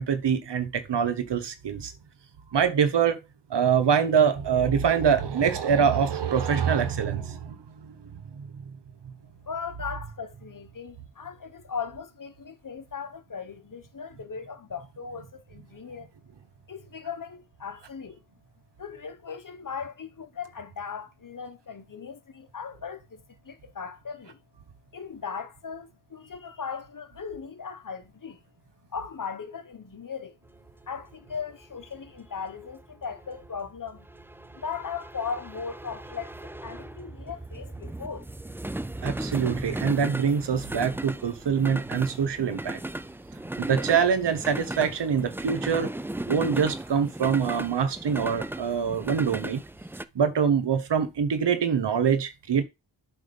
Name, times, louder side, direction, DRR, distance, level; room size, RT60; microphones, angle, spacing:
voice 1, 0.0-1.9 2.5-3.2 3.5-8.0 8.3-8.5 39.0-42.8 43.6-45.9 46.2-49.6 50.1-52.6, right 7 dB, 75° right, 1.2 m, -24 dB
voice 2, 9.5-16.1 16.7-18.2 18.8-24.4 24.9-28.4 28.9-30.4 30.9-34.1 34.5-38.3, left 6 dB, 45° left, 1.1 m, -38 dB
sound 1, 30.5-50.0, right 1 dB, 5° right, 0.4 m, -37 dB
7.9 x 3.5 x 5.3 m
cardioid pair, 55°, 43 cm